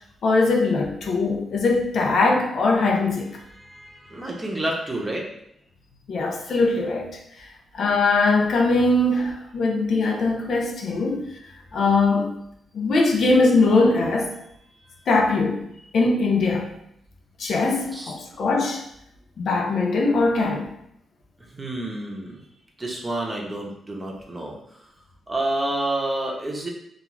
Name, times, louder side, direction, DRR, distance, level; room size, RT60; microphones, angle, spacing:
voice 1, 0.2-3.4 6.1-7.2 7.7-11.2 11.7-12.4 12.7-14.3 15.1-15.7 15.9-16.7 17.4-18.8 19.4-20.7, left 3 dB, 70° left, 1 dB, 0.5 m, -21 dB
voice 2, 3.6-5.2 17.9-18.1 21.5-22.4 22.8-24.5 25.3-26.7, right 1 dB, 25° right, -1 dB, 0.7 m, -29 dB
2.4 x 2.3 x 3.1 m, 0.74 s
cardioid pair, 80°, 0 cm